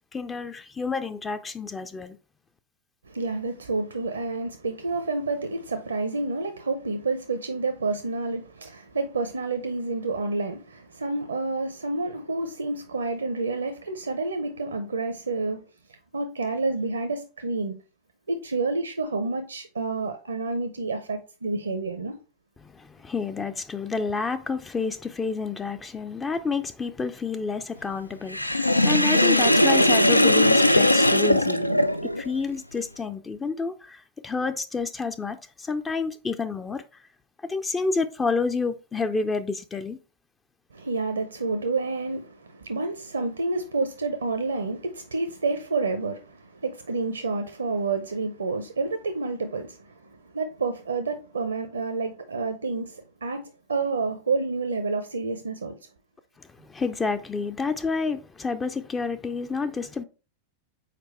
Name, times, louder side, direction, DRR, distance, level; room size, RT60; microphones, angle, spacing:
voice 1, 0.1-2.2 22.6-37.1 37.4-40.0 56.4-60.0, left 4 dB, 15° left, 0.4 m, -29 dB
voice 2, 3.1-15.6 16.1-17.7 18.3-22.2 40.7-55.8, right 3 dB, 75° right, 0.6 m, -29 dB
Sink (filling or washing), 28.3-32.3, left 1 dB, 85° left, 0.3 m, -19 dB
6.6 x 4.6 x 3.2 m
figure-of-eight pair, 90°, 0 cm